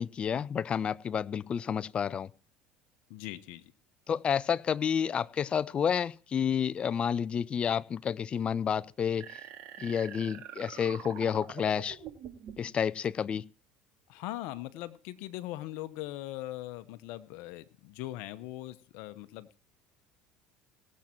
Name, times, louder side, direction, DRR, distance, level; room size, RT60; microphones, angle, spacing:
voice 1, 0.0-2.3 4.1-9.4 9.8-12.0 12.6-13.4, left 7 dB, 35° left, 0.5 m, -30 dB
voice 2, 3.1-3.7 14.1-19.6, left 16 dB, 75° left, 1.0 m, -40 dB
sound 1, 9.2-12.7, right 9 dB, 55° right, 2.3 m, -45 dB
18.0 x 7.5 x 4.5 m
supercardioid pair, 90°, 3 cm